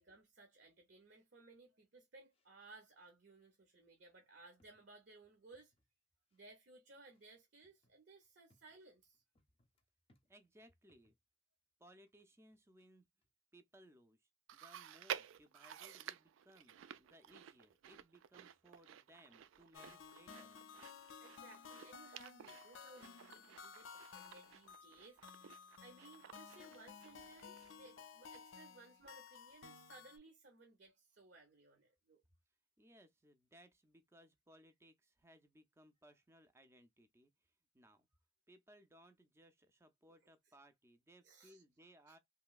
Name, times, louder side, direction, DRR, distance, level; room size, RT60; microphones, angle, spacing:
voice 1, 0.0-5.7 6.3-9.2 21.2-25.2 25.8-32.2 41.2-41.6 42.1-42.2, right 3 dB, 60° right, 0.7 m, -61 dB
sound 1, 2.3-2.5 2.9-3.4 4.1-4.2 4.6-5.9 6.3-6.5 7.1-11.2 12.1-12.9 13.2-13.3, left 1 dB, 30° left, 0.6 m, -79 dB
voice 2, 10.3-11.2 11.8-13.1 13.5-20.7 32.8-38.1 38.5-42.2, right 1 dB, 15° right, 0.4 m, -65 dB
Chewing mastication, 14.5-28.0 28.3-28.4 29.3-29.4, right 10 dB, 90° right, 0.3 m, -52 dB
sound 2, 19.7-30.2, left 6 dB, 85° left, 0.4 m, -56 dB
3.0 x 2.7 x 2.3 m
head